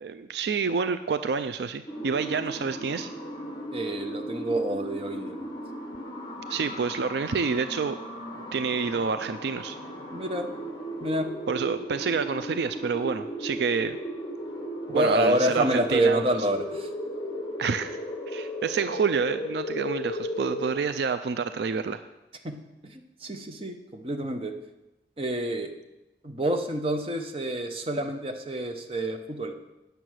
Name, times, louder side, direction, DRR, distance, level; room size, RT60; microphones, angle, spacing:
voice 1, 0.0-3.1 6.5-8.0 8.3-9.8 11.5-14.0 14.9-16.2 17.6-17.9 18.3-22.0, right 5 dB, 70° right, 10 dB, 0.4 m, -28 dB
sound 1, 1.9-20.7, equal, 25° left, 1.2 m, -36 dB
voice 2, 3.7-5.5 10.1-10.5 11.0-11.3 14.9-16.9 22.4-22.6 22.8-24.5 25.2-25.7 26.2-29.5, right 1 dB, 30° right, 4 dB, 0.9 m, -28 dB
9.0 x 6.8 x 6.3 m, 0.98 s
head